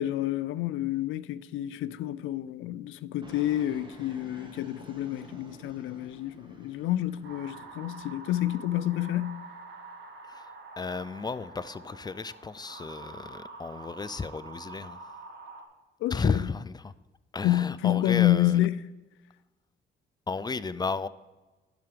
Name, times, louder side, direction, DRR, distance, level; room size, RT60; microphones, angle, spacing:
voice 1, 0.0-9.4 16.0-16.5 17.4-18.8, left 14 dB, 85° left, 0.5 m, -28 dB
Fixed-wing aircraft airplane, 3.2-8.6, right 1 dB, 25° right, 1.7 m, -51 dB
sound 1, 7.2-15.6, right 3 dB, 65° right, 1.4 m, -46 dB
voice 2, 10.8-15.0 16.1-16.9 17.3-18.6 20.3-21.1, left 4 dB, 20° left, 0.4 m, -33 dB
11.0 x 5.9 x 5.0 m
cardioid pair, 90°, 20 cm